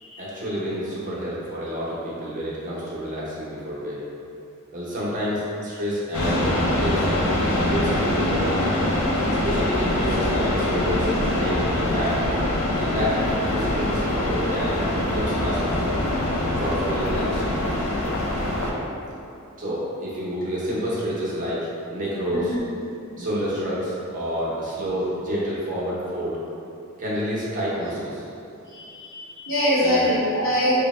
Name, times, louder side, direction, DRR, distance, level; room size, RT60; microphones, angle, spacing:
voice 1, 0.2-4.0 4.7-6.5 6.8-7.3 7.6-8.7 9.4-12.2 12.8-13.2 13.5-14.8 15.1-15.6 16.6-17.6 19.6-22.6 23.2-26.4 27.0-28.2 29.8-30.1, equal, 35° right, -8 dB, 0.7 m, -28 dB
sound 1, 6.1-18.7, left 1 dB, 90° left, 0.5 m, -24 dB
voice 2, 28.7-30.8, equal, 65° left, -7 dB, 0.9 m, -23 dB
3.3 x 2.1 x 4.1 m, 2.7 s
head